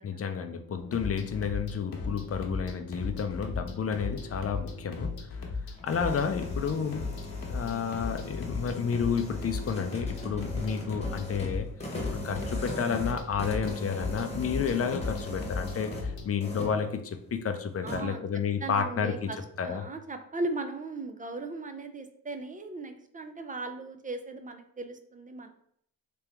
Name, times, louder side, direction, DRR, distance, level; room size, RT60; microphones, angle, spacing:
voice 1, 0.0-5.1 5.8-7.0 7.5-11.7 12.1-19.3 19.6-19.9, left 6 dB, 40° left, 7 dB, 0.5 m, -31 dB
sound 1, 0.8-16.3, left 4 dB, 75° left, 0.9 m, -37 dB
sound 2, 5.6-16.1 16.4-16.8 17.9-18.0, left 1 dB, 15° left, 1.0 m, -40 dB
voice 2, 17.8-18.2 18.6-19.4 19.6-25.5, right 2 dB, 20° right, 7 dB, 0.4 m, -37 dB
3.5 x 2.9 x 3.4 m, 0.68 s
wide cardioid pair, 115°, 37 cm